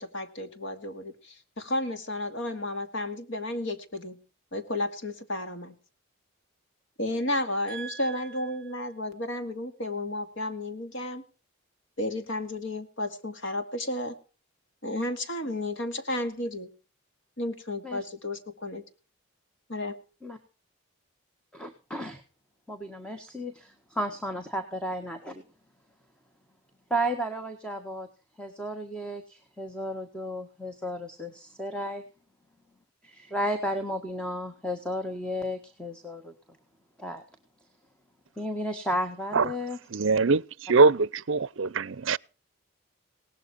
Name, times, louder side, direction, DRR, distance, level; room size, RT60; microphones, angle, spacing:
voice 1, 0.0-4.2 4.5-5.7 7.0-11.2 12.0-14.2 14.8-16.7 17.4-18.8 19.7-19.9, left 1 dB, 60° left, 2.3 m, -32 dB
voice 2, 7.7-8.3 17.8-18.1 20.2-20.4 21.5-22.2 22.7-25.4 26.9-28.1 28.4-29.2 29.6-32.0 33.0-36.3 37.0-37.2 38.4-39.8, equal, 5° left, 1.6 m, -33 dB
voice 3, 39.9-42.2, right 4 dB, 65° right, 0.6 m, -23 dB
18.5 x 12.5 x 4.4 m
head